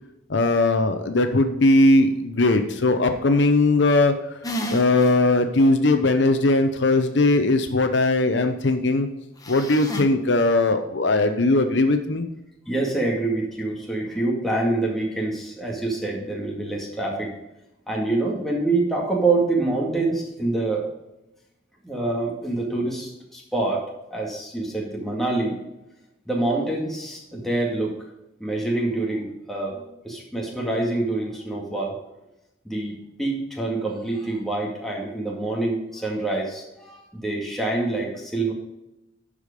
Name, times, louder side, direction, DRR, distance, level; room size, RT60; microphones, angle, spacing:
voice 1, 0.3-4.1 4.7-9.1 9.5-12.3, left 2 dB, 65° left, 7 dB, 0.8 m, -19 dB
sound 1, 4.4-5.2 5.6-5.7 9.4-10.0, equal, 20° left, 1.1 m, -31 dB
voice 2, 12.7-17.4 17.9-20.9 21.8-25.6 26.3-28.0 28.4-32.0 32.6-38.5, right 2 dB, ahead, -3 dB, 2.1 m, -26 dB
11.5 x 5.0 x 5.1 m, 0.93 s
head